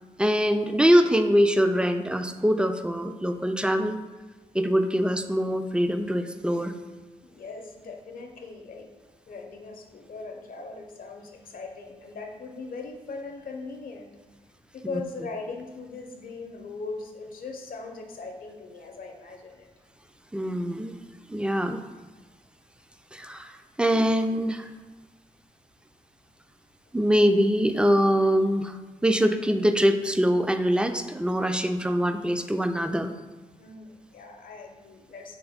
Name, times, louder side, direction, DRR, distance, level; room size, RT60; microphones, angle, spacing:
voice 1, 0.2-4.0 4.5-6.7 20.3-20.9 21.3-21.8 23.1-24.7 26.9-33.1, equal, 5° right, 8 dB, 0.3 m, -23 dB
voice 2, 7.2-8.9 9.3-14.1 14.7-19.7 33.6-35.4, left 3 dB, 70° left, 4 dB, 0.6 m, -39 dB
3.5 x 3.5 x 3.5 m, 1.2 s
cardioid pair, 60°, 15 cm